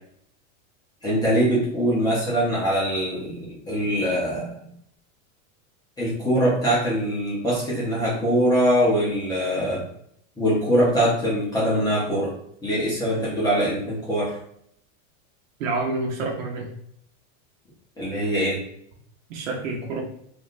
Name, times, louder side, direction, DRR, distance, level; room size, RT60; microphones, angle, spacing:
voice 1, 1.0-4.5 6.0-9.9 10.4-12.3 12.6-14.4 18.0-18.6, equal, 10° left, -8 dB, 0.5 m, -23 dB
voice 2, 15.6-16.7 19.3-20.0, right 3 dB, 75° right, -1 dB, 0.9 m, -28 dB
3.1 x 2.4 x 2.5 m, 0.70 s
supercardioid pair, 155°, 40 cm